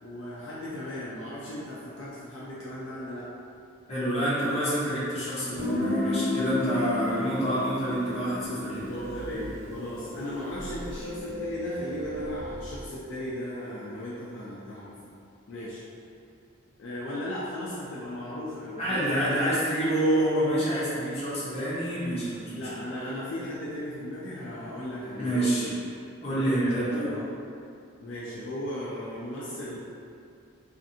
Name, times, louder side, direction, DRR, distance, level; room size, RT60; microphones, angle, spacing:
voice 1, 0.0-3.3 7.1-7.3 8.8-15.0 15.5-15.8 16.8-19.6 22.5-25.8 26.3-27.3 28.0-29.8, left 1 dB, 60° left, -7 dB, 0.4 m, -36 dB
voice 2, 3.9-8.8 18.8-22.7 25.2-25.7 26.2-27.1, right 1 dB, 30° left, -10 dB, 0.7 m, -27 dB
Guitar, 5.6-11.1, left 1 dB, 75° right, 1.0 m, -32 dB
sound 1, 8.2-12.9, right 1 dB, 35° right, 0.9 m, -39 dB
2.5 x 2.5 x 2.6 m, 2.5 s
head